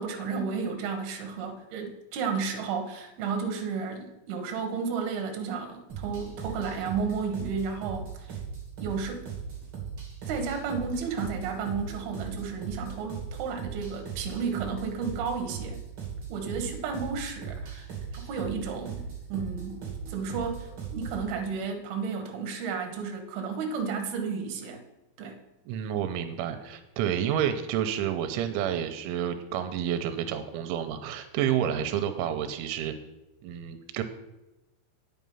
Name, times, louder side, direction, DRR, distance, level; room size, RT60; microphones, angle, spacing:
voice 1, 0.0-8.4 8.8-9.3 10.3-15.8 16.3-17.9 18.1-24.8 25.2-25.4, right 5 dB, 65° right, 4 dB, 2.9 m, -33 dB
sound 1, 5.9-21.3, right 6 dB, 35° right, 2.5 m, -38 dB
voice 2, 25.7-33.0 33.4-34.0, right 9 dB, 85° right, 8 dB, 3.1 m, -29 dB
9.4 x 8.3 x 5.4 m, 0.99 s
omnidirectional pair, 5.5 m